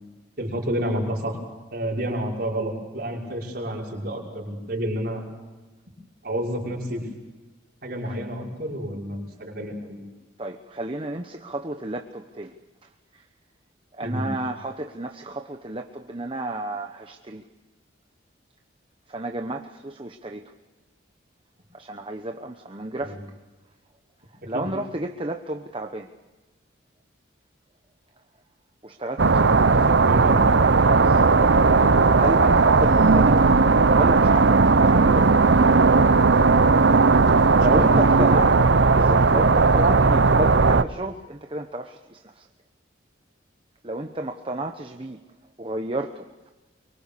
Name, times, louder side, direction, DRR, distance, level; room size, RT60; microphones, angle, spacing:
voice 1, 0.4-1.4 1.7-5.2 6.2-7.0 7.8-10.1 14.0-14.2 23.0-23.2 24.5-24.7 29.8-30.4 37.4-38.5, equal, 50° right, -2 dB, 6.0 m, -29 dB
voice 2, 10.4-12.5 12.8-13.3 13.9-17.4 19.1-20.5 21.7-23.2 24.5-26.1 28.8-29.9 31.0-31.4 32.1-33.6 33.9-35.6 37.4-38.6 38.9-42.5 43.8-45.2 45.6-46.5, right 1 dB, 25° right, 5 dB, 1.0 m, -31 dB
sound 1, 29.2-40.8, right 4 dB, 65° right, 0.7 m, -17 dB
24.5 x 24.0 x 6.8 m, 1.2 s
head